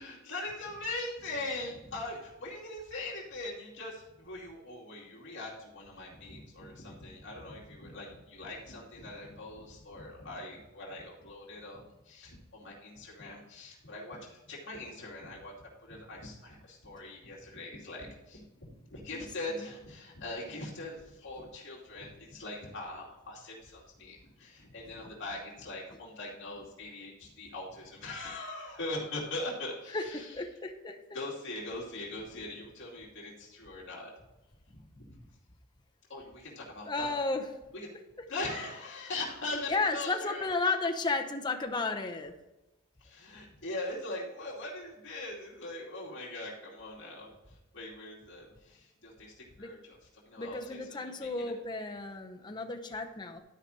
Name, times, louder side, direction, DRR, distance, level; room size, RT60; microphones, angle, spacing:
voice 1, 0.0-15.5 15.8-30.4 31.1-34.1 34.7-35.2 36.1-37.1 37.7-37.9 38.3-40.5 43.0-50.0 50.3-51.5, left 2 dB, 60° left, -5 dB, 2.5 m, -41 dB
voice 2, 19.1-19.7 25.0-25.1 29.9-31.0 36.8-37.5 39.7-42.3 49.6-49.7 50.4-53.4, left 3 dB, 20° left, 3 dB, 0.7 m, -33 dB
12.0 x 5.0 x 4.2 m, 0.99 s
head